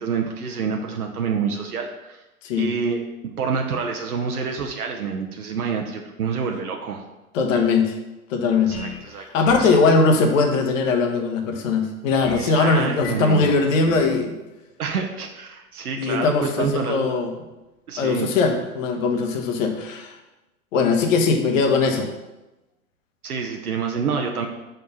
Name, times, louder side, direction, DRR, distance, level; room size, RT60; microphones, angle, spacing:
voice 1, 0.0-2.2 2.6-3.0 3.4-7.0 8.7-9.8 12.4-13.5 14.8-17.2 17.9-18.3 23.2-24.5, right 5 dB, 80° right, 3 dB, 0.9 m, -27 dB
voice 2, 7.3-7.9 8.3-8.7 9.2-14.3 16.0-17.3 18.0-20.1 20.7-22.1, left 4 dB, 60° left, 4 dB, 1.3 m, -20 dB
sound 1, 8.7-9.1 9.4-9.8 12.2-12.5 13.0-13.3 13.9-14.2, left 4 dB, 30° left, 1.2 m, -35 dB
5.2 x 4.6 x 5.5 m, 1.0 s
hypercardioid pair, 105°, 44 cm